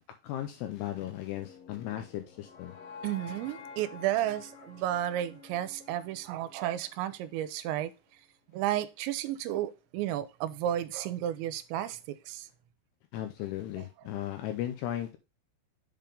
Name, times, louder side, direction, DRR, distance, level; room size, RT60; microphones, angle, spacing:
voice 1, 0.2-2.8 13.1-15.2, left 12 dB, 85° left, 2.5 m, -36 dB
sound 1, 1.2-7.3, left 5 dB, 65° left, 3.6 m, -50 dB
voice 2, 3.0-7.9 8.5-12.5 13.8-13.9, right 12 dB, 85° right, 2.9 m, -32 dB
7.6 x 3.5 x 5.2 m
omnidirectional pair, 5.2 m